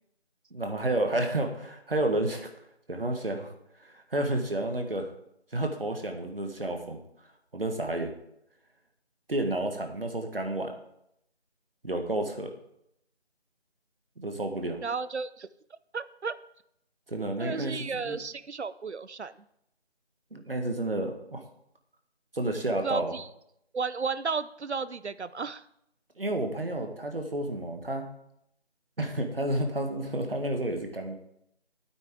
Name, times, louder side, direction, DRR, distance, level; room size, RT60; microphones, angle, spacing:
voice 1, 0.5-2.5 2.9-3.5 3.8-5.1 5.5-7.0 7.5-8.1 9.3-10.7 11.8-12.5 14.2-14.8 17.1-18.2 20.3-21.4 22.3-23.1 26.2-28.1 29.0-31.1, right 1 dB, 60° right, 5 dB, 1.6 m, -30 dB
voice 2, 14.8-15.5 15.9-16.4 17.4-19.3 22.8-23.3 23.7-25.6, right 5 dB, 85° right, 15 dB, 0.6 m, -33 dB
11.0 x 9.0 x 3.7 m, 0.76 s
figure-of-eight pair, 165°, 33 cm